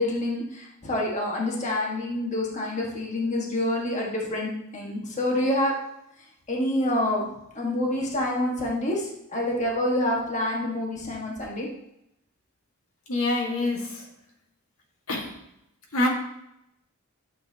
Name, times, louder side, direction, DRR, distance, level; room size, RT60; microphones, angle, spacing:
voice 1, 0.0-5.7 6.5-7.2 7.6-11.7, left 1 dB, 35° left, -2 dB, 1.7 m, -27 dB
voice 2, 13.1-14.0 15.1-15.3 15.9-16.1, left 2 dB, 75° left, -1 dB, 2.0 m, -25 dB
12.0 x 7.4 x 2.9 m, 0.81 s
head